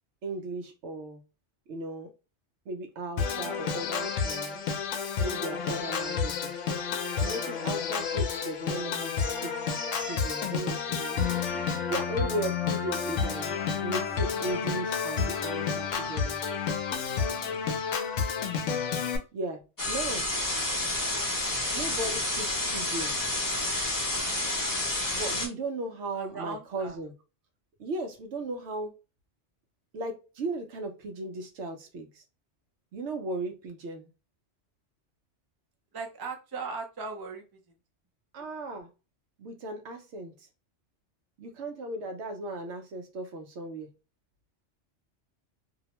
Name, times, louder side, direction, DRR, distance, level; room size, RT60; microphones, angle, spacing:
voice 1, 0.2-1.2 1.7-2.1 2.7-4.6 5.2-6.6 7.1-9.5 10.0-13.5 13.8-16.4 19.3-20.3 21.7-23.2 25.1-27.1 27.8-28.9 29.9-32.2 32.9-34.1 38.3-38.9 39.4-40.5 41.4-43.9, right 2 dB, 70° right, 0.9 m, -36 dB
Organ, 3.2-19.2, left 6 dB, 80° left, 0.9 m, -30 dB
voice 2, 13.4-13.7 17.9-18.0 26.1-27.0 35.9-37.4, right 4 dB, 35° right, 0.3 m, -38 dB
sound 1, 19.8-25.5, left 2 dB, 25° left, 0.5 m, -29 dB
2.7 x 2.1 x 2.9 m
omnidirectional pair, 1.3 m